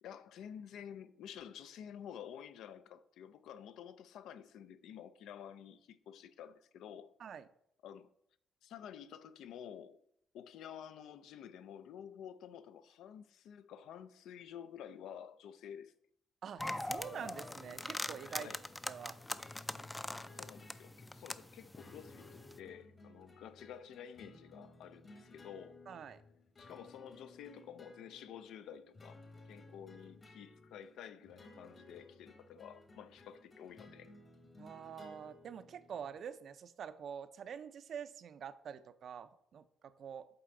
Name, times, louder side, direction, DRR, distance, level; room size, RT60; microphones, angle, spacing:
voice 1, 0.0-7.1 7.8-8.1 8.6-10.0 10.3-15.9 18.3-18.6 20.3-25.8 26.6-29.2 29.5-34.1, left 9 dB, 80° left, 0.4 m, -51 dB
voice 2, 16.4-18.5 18.9-19.2 25.9-26.2 34.6-40.4, right 7 dB, 60° right, 0.5 m, -46 dB
sound 1, 16.6-22.6, left 1 dB, 10° left, 0.3 m, -43 dB
sound 2, 17.0-36.2, left 2 dB, 35° left, 1.1 m, -58 dB
7.7 x 4.1 x 3.8 m
cardioid pair, 90°, 0 cm